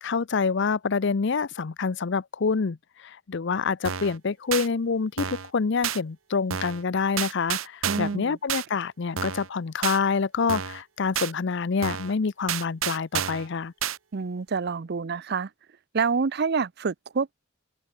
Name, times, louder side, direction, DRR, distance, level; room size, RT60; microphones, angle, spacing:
voice 1, 0.0-13.7, left 5 dB, 60° left, 0.6 m, -27 dB
sound 1, 3.8-4.2 4.5-4.7 5.2-5.5 5.8-6.0 6.5-6.8 7.2-8.2 8.5-8.7 9.2-9.5 9.8-10.0 10.5-10.8 11.1-11.3 11.8-12.1 12.5-13.5 13.8-14.0, right 8 dB, 80° right, 1.0 m, -30 dB
voice 2, 7.9-8.4 14.1-15.5 15.9-17.3, right 5 dB, 55° right, 0.5 m, -27 dB
head